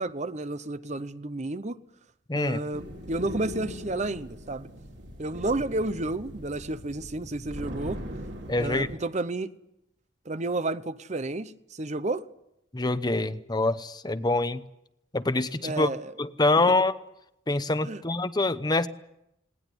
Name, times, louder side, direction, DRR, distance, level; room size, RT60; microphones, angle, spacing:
voice 1, 0.0-1.8 2.3-4.7 5.2-8.0 8.6-9.5 10.3-12.2 15.6-16.1 17.8-18.0, right 2 dB, 40° right, 0.8 m, -31 dB
voice 2, 2.3-2.6 8.5-8.9 12.7-14.6 15.1-15.9 16.2-16.9 17.5-18.9, left 2 dB, 20° left, 0.8 m, -25 dB
sound 1, 2.7-9.0, equal, 65° right, 3.6 m, -40 dB
19.5 x 19.0 x 9.9 m
head